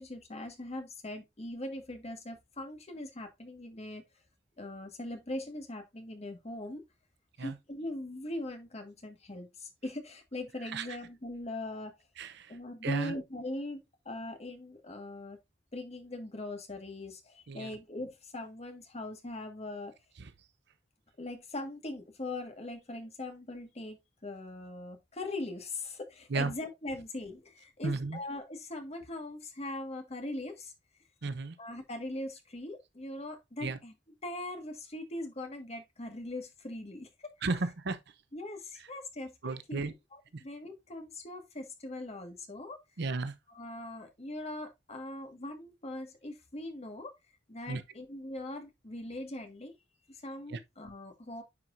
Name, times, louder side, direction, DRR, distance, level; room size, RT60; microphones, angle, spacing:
voice 1, 0.0-4.0 4.6-6.8 7.4-11.9 12.5-15.4 15.7-19.9 21.2-30.7 31.6-33.9 34.2-37.3 38.3-42.8 43.5-47.1 47.5-49.7 50.1-51.4, left 1 dB, 35° left, 1.7 m, -41 dB
voice 2, 12.8-13.1 17.5-17.7 26.3-26.5 27.8-28.2 31.2-31.5 33.6-33.8 37.4-38.0 39.4-39.9 43.0-43.3 47.7-47.8 50.5-50.6, right 3 dB, 65° right, 0.7 m, -33 dB
9.7 x 4.6 x 2.5 m
head